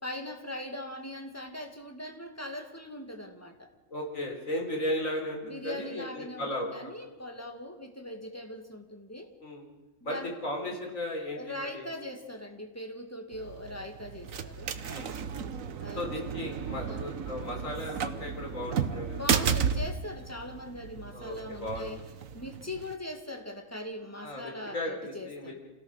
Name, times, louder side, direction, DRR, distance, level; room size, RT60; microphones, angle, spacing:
voice 1, 0.0-3.7 5.4-9.3 10.0-10.3 11.3-14.8 15.8-16.0 16.8-17.1 19.1-22.0 22.3-25.6, left 1 dB, 10° left, 4 dB, 2.2 m, -40 dB
voice 2, 3.9-6.7 9.4-9.7 10.0-11.9 14.9-15.1 16.0-19.2 21.1-22.0 24.2-25.7, left 1 dB, 75° left, 0 dB, 4.6 m, -36 dB
sound 1, 13.3-22.9, right 7 dB, 80° right, 1.4 m, -34 dB
27.0 x 17.0 x 6.6 m, 1.2 s
omnidirectional pair, 1.4 m